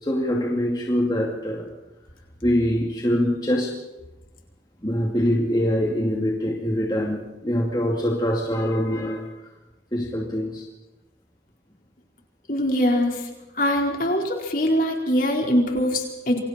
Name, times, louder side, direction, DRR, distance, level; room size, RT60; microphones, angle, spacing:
voice 1, 0.0-1.7 2.4-3.7 4.8-9.3 9.9-10.6, equal, 25° left, -1 dB, 2.6 m, -24 dB
voice 2, 12.5-13.3 13.6-16.4, equal, 50° left, 1 dB, 4.5 m, -22 dB
29.0 x 24.0 x 4.4 m, 1.0 s
head